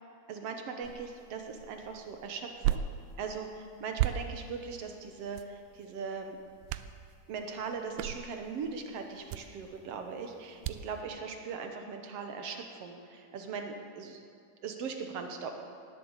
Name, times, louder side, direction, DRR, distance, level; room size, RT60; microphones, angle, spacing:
voice 1, 0.3-2.8 3.2-6.4 7.3-14.2 14.6-15.5, right 5 dB, 65° right, 4 dB, 1.7 m, -39 dB
sound 1, 0.8-11.0, right 12 dB, 90° right, 1.6 m, -38 dB
19.0 x 7.6 x 8.1 m, 2.3 s
omnidirectional pair, 3.8 m